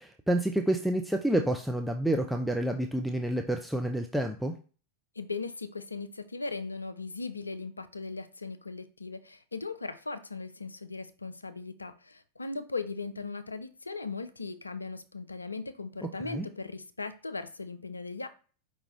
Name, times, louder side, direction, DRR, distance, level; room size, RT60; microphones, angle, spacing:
voice 1, 0.0-4.5 16.3-16.5, right 1 dB, ahead, 3 dB, 0.4 m, -29 dB
voice 2, 5.2-18.3, left 3 dB, 80° left, 11 dB, 0.4 m, -38 dB
4.9 x 3.4 x 3.1 m, 0.37 s
figure-of-eight pair, 90°, 0 cm